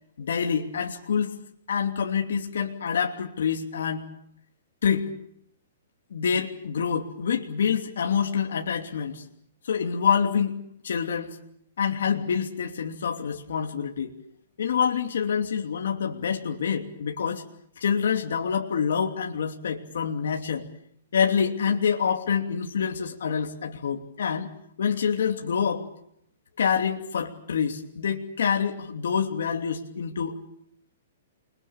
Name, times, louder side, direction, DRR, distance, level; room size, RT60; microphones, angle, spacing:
voice 1, 0.2-1.4 1.7-4.0 4.8-5.1 6.1-9.2 9.6-10.6 10.8-11.4 11.8-14.1 14.6-17.4 17.8-20.6 21.1-24.5 24.8-25.8 26.6-30.4, left 7 dB, 80° left, 2 dB, 2.9 m, -26 dB
29.5 x 22.5 x 7.2 m, 0.73 s
hypercardioid pair, 165°, 0 cm